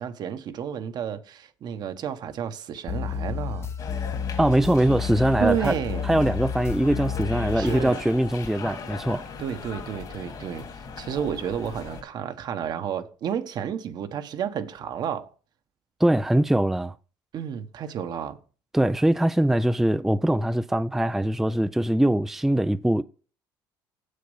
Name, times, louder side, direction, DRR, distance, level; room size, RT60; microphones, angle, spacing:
voice 1, 0.0-3.7 5.4-6.0 7.5-8.0 9.4-10.7 11.0-15.3 17.3-18.4, right 8 dB, 55° right, 1.1 m, -31 dB
sound 1, 2.9-7.9, left 7 dB, 30° left, 0.8 m, -31 dB
sound 2, 3.8-12.0, left 5 dB, 50° left, 2.2 m, -39 dB
voice 2, 4.4-5.8 6.0-9.2 16.0-16.9 18.7-23.0, right 1 dB, 5° right, 0.4 m, -22 dB
7.7 x 6.6 x 5.4 m
cardioid pair, 105°, 9 cm